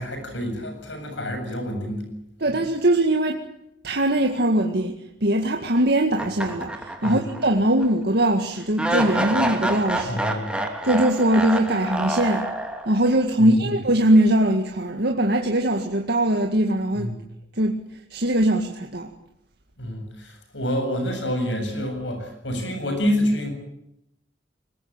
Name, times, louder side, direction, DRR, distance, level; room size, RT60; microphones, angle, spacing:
voice 1, 0.0-2.1 7.0-7.3 10.0-10.5 13.4-13.5 17.0-17.2 19.8-23.5, equal, 75° left, 7.8 m, -27 dB
voice 2, 2.4-3.5 3.8-10.2 10.8-12.5 12.9-17.1 17.6-17.8 18.1-19.1, right 1 dB, 60° right, 2.0 m, -21 dB
sound 1, 6.2-7.5 7.8-7.9 8.8-13.1, right 1 dB, 5° right, 3.1 m, -27 dB
23.5 x 21.0 x 9.0 m
head